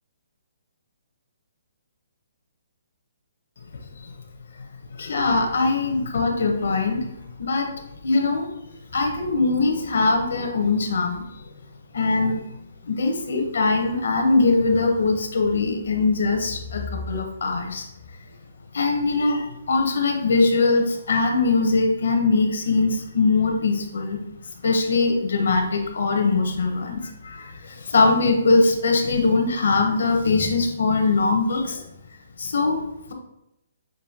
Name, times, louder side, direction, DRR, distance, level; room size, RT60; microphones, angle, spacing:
voice 1, 5.0-7.7 8.0-8.5 8.9-11.5 11.9-12.4 12.8-17.9 18.7-24.2 24.6-31.8 32.4-32.8, left 3 dB, 70° left, 4 dB, 0.8 m, -21 dB
6.0 x 2.7 x 2.8 m, 0.85 s
hypercardioid pair, 170°, 0 cm